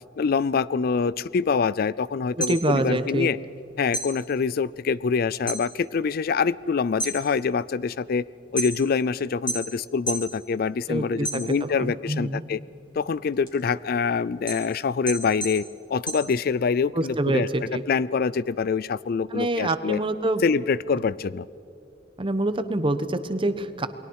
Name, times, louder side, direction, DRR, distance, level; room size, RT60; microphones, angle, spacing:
voice 1, 0.2-3.4 3.8-8.2 8.5-12.6 13.0-15.6 15.9-20.0 20.4-21.5, left 5 dB, 55° left, 20 dB, 0.4 m, -25 dB
sound 1, 2.2-3.6 3.9-5.7 6.0-6.5 6.9-9.0 9.5-10.3 10.7-11.9 12.3-16.9, right 1 dB, 30° left, 4.3 m, -33 dB
voice 2, 2.4-3.3 10.9-12.4 16.9-17.8 19.3-20.4 22.2-23.9, right 1 dB, 30° right, 10 dB, 1.1 m, -26 dB
29.0 x 21.5 x 4.7 m, 2.7 s
head